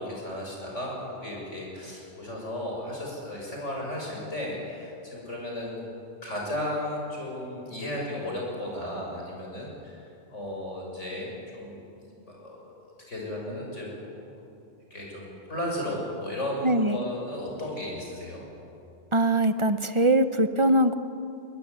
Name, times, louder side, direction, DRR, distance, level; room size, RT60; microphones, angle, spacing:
voice 1, 0.0-5.8 6.2-10.0 10.3-11.8 12.3-14.4 14.9-18.5, left 1 dB, 85° left, -2 dB, 7.0 m, -35 dB
voice 2, 16.6-17.0 19.1-20.9, right 1 dB, 30° right, 10 dB, 0.9 m, -22 dB
21.5 x 20.0 x 9.6 m, 2.7 s
omnidirectional pair, 1.2 m